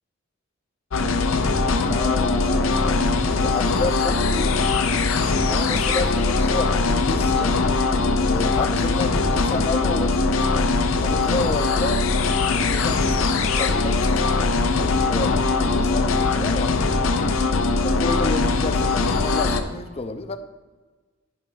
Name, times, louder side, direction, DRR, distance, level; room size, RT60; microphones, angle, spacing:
sound 1, 0.9-19.6, left 3 dB, 75° left, 0.6 m, -21 dB
voice 1, 1.8-4.6 5.5-7.6 8.2-10.5 11.0-12.1 12.6-14.4 14.8-15.3 15.6-16.7 17.7-20.4, left 2 dB, 30° left, 10 dB, 0.5 m, -30 dB
10.5 x 3.8 x 5.7 m, 1.3 s
head